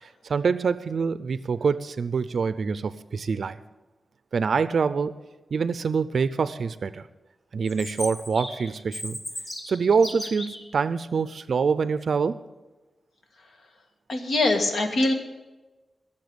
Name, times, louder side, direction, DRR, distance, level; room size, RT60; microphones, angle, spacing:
voice 1, 0.0-3.6 4.3-5.1 5.5-7.1 7.5-9.2 9.7-12.4, right 5 dB, 65° right, 14 dB, 0.5 m, -25 dB
Chirp tweet, 7.7-10.6, left 1 dB, 35° left, 1.9 m, -36 dB
voice 2, 14.1-15.1, left 2 dB, 75° left, 5 dB, 1.7 m, -23 dB
17.0 x 7.1 x 8.0 m, 1.2 s
wide cardioid pair, 170°, 0 cm